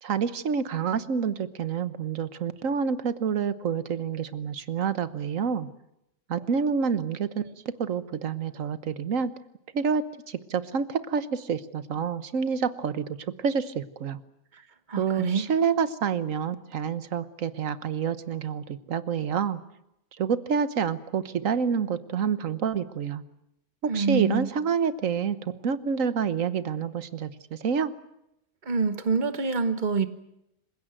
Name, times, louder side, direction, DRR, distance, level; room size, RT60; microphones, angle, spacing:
voice 1, 0.0-5.7 6.3-9.3 9.7-14.2 15.0-19.6 20.2-23.2 23.8-27.9, right 6 dB, 80° right, 14 dB, 1.5 m, -28 dB
voice 2, 14.9-15.5 23.8-24.5 28.6-30.1, right 4 dB, 35° right, 11 dB, 1.4 m, -26 dB
27.0 x 16.5 x 9.0 m, 0.84 s
omnidirectional pair, 1.3 m